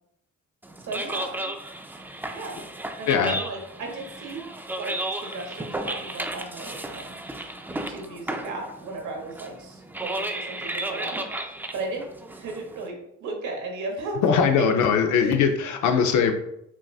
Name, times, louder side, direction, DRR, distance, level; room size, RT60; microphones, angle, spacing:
sound 1, 0.6-12.9, right 1 dB, 5° right, 0.3 m, -34 dB
voice 1, 0.8-1.6 2.3-2.7 3.0-4.4 4.8-14.2 14.6-14.7 15.1-15.4, right 2 dB, 75° right, 1 dB, 1.1 m, -36 dB
voice 2, 3.1-3.4 14.2-16.3, left 6 dB, 75° left, 6 dB, 0.5 m, -21 dB
5.7 x 2.5 x 2.3 m, 0.79 s
cardioid pair, 90°, 30 cm